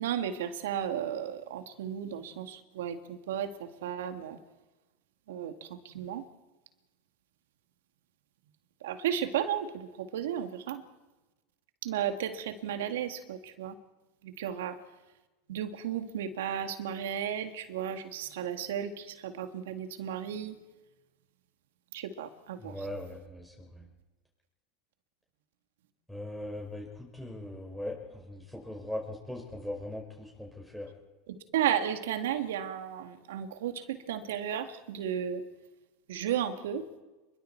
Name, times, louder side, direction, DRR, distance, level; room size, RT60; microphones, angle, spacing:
voice 1, 0.0-4.4 5.3-6.3 8.8-10.8 11.8-13.8 14.2-14.8 15.5-20.6 21.9-22.8 31.3-35.4 36.1-36.9, right 9 dB, 75° right, 8 dB, 2.0 m, -34 dB
voice 2, 22.6-23.8 26.1-30.9, left 1 dB, ahead, -1 dB, 5.4 m, -40 dB
27.5 x 22.0 x 4.6 m, 1.1 s
hypercardioid pair, 95°, 0 cm